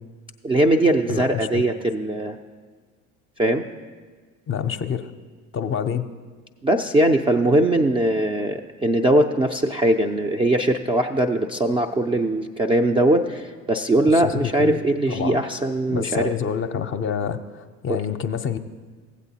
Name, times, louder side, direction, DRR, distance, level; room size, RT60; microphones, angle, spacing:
voice 1, 0.4-2.4 3.4-3.6 6.6-16.3 17.9-18.0, right 1 dB, 15° right, 3 dB, 0.3 m, -20 dB
voice 2, 1.1-1.6 4.5-5.1 5.5-6.1 14.1-14.8 15.1-15.4 15.9-18.6, left 7 dB, 30° left, 9 dB, 0.6 m, -27 dB
16.0 x 8.2 x 2.8 m, 1.5 s
hypercardioid pair, 65°, 41 cm